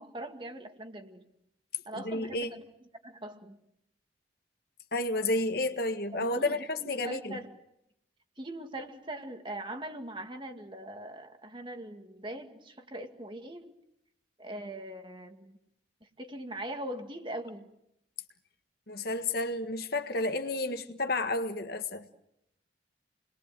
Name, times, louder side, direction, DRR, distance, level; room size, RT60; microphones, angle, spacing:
voice 1, 0.0-1.3 1.9-2.6 3.0-3.6 6.1-7.5 8.4-13.7 14.4-15.6 16.0-17.7, right 1 dB, 30° right, 2.1 m, -41 dB
voice 2, 2.0-2.5 4.9-7.4 18.9-22.1, left 2 dB, 60° left, 1.6 m, -31 dB
29.5 x 21.5 x 7.6 m
head